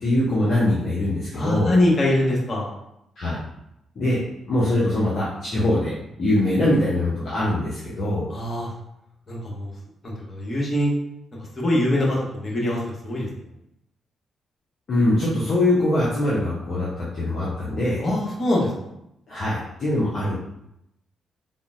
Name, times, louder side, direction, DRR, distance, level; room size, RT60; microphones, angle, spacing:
voice 1, 0.0-1.7 3.2-3.4 4.0-8.3 14.9-18.0 19.3-20.4, left 1 dB, 55° left, -7 dB, 0.6 m, -23 dB
voice 2, 1.3-2.8 8.3-8.7 9.3-9.7 10.0-10.9 11.6-13.3 18.0-18.7, left 1 dB, 40° left, -4 dB, 1.1 m, -23 dB
3.7 x 2.1 x 2.4 m, 0.82 s
hypercardioid pair, 40°, 0 cm